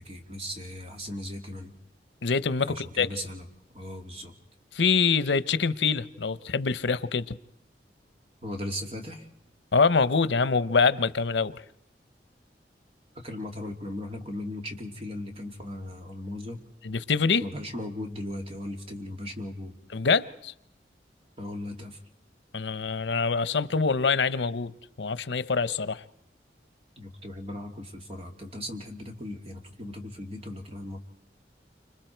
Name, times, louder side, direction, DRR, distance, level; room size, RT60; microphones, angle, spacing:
voice 1, 0.0-1.7 2.7-3.5 3.7-4.3 8.4-9.3 13.1-16.6 17.4-19.8 21.4-22.0 27.0-31.0, left 1 dB, 35° right, 2.6 m, -37 dB
voice 2, 2.2-3.1 4.7-7.4 9.7-11.6 16.8-17.4 19.9-20.5 22.5-24.7 25.0-26.0, left 5 dB, 90° left, 0.8 m, -25 dB
29.5 x 26.5 x 4.5 m
head